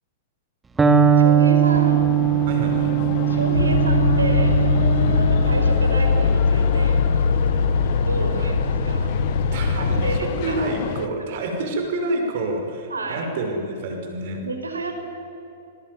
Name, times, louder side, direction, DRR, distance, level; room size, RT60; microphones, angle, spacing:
Electric guitar, 0.8-8.6, right 8 dB, 10° right, 2.5 m, -21 dB
voice 1, 1.2-2.0 3.3-7.0 7.9-9.1 9.8-10.7 11.2-11.3 12.9-13.3 14.4-15.0, right 3 dB, 75° right, 5 dB, 4.9 m, -30 dB
sound 1, 1.7-11.1, left 13 dB, 45° left, 1.3 m, -30 dB
voice 2, 2.5-3.0 5.0-5.2 8.4-8.5 9.5-14.4, right 2 dB, 50° right, 4 dB, 5.7 m, -28 dB
sound 2, 3.5-10.2, left 4 dB, 75° left, 1.6 m, -20 dB
27.5 x 21.5 x 9.7 m, 2.9 s
figure-of-eight pair, 100°, 0 cm